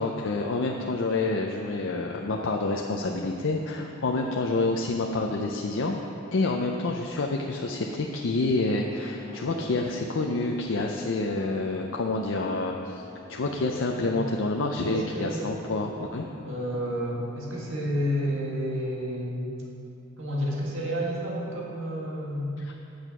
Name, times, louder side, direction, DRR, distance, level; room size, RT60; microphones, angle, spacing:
voice 1, 0.0-6.0 6.3-16.3 22.6-22.7, left 2 dB, 70° left, 1 dB, 0.5 m, -28 dB
sound 1, 1.1-19.1, equal, 50° right, 2.2 m, -50 dB
voice 2, 13.9-14.2 14.8-15.5 16.4-19.4 20.2-22.5, equal, 70° right, -4 dB, 1.7 m, -30 dB
9.0 x 6.5 x 5.9 m, 2.7 s
head